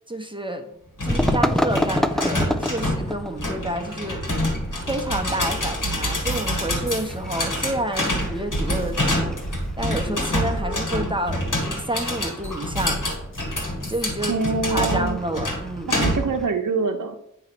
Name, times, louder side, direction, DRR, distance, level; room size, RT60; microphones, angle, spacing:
voice 1, 0.1-0.7 1.0-4.2 4.9-13.1 13.9-15.9, right 1 dB, 15° right, 4 dB, 0.8 m, -29 dB
sound 1, 1.0-16.4, left 1 dB, 70° left, 1.7 m, -27 dB
sound 2, 1.1-16.5, left 1 dB, ahead, 0.4 m, -31 dB
sound 3, 6.3-6.6 6.9-9.0 9.4-14.1, equal, 40° left, 1.1 m, -37 dB
voice 2, 14.3-15.2 15.9-17.1, right 4 dB, 65° right, 2 dB, 0.7 m, -25 dB
8.6 x 3.0 x 5.9 m, 0.75 s
wide cardioid pair, 70°, 33 cm